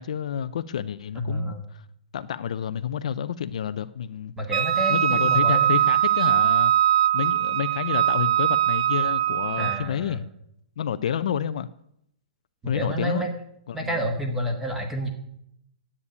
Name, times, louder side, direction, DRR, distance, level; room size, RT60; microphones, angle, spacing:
voice 1, 0.0-1.8 2.1-4.3 4.9-6.7 7.1-10.3 10.8-11.7 12.7-13.3 13.7-14.0, left 8 dB, 50° left, 0.5 m, -29 dB
voice 2, 1.1-1.6 4.4-5.8 9.6-10.2 12.6-13.3 13.7-15.1, equal, 5° right, 1.4 m, -29 dB
Wind instrument woodwind instrument, 4.5-9.9, right 11 dB, 50° right, 0.5 m, -21 dB
9.8 x 8.5 x 9.6 m
hypercardioid pair, 180°, 4 cm